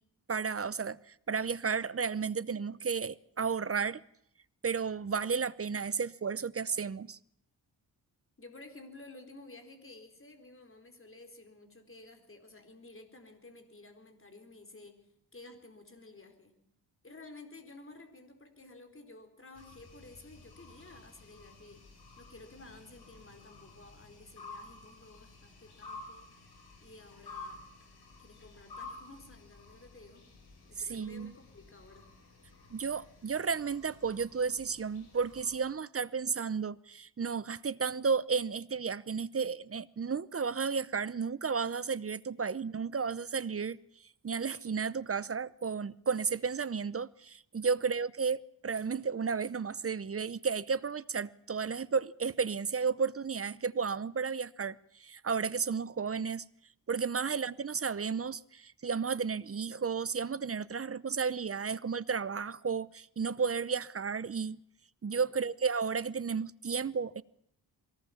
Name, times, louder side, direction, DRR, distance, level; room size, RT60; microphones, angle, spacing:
voice 1, 0.3-4.0 4.6-7.2 30.8-31.3 32.7-43.8 44.2-56.4 56.9-64.6 65.0-67.2, right 5 dB, 35° right, 0.7 m, -33 dB
voice 2, 8.4-15.0 15.3-16.5 17.0-21.8 22.2-26.3 26.8-27.6 28.2-30.3 30.7-32.1 42.3-42.5 47.8-47.9 57.3-57.4 65.3-65.5, left 2 dB, 30° left, 4.4 m, -53 dB
sound 1, 19.5-35.6, left 3 dB, 70° left, 6.3 m, -52 dB
23.0 x 18.0 x 7.2 m
wide cardioid pair, 90°, 40 cm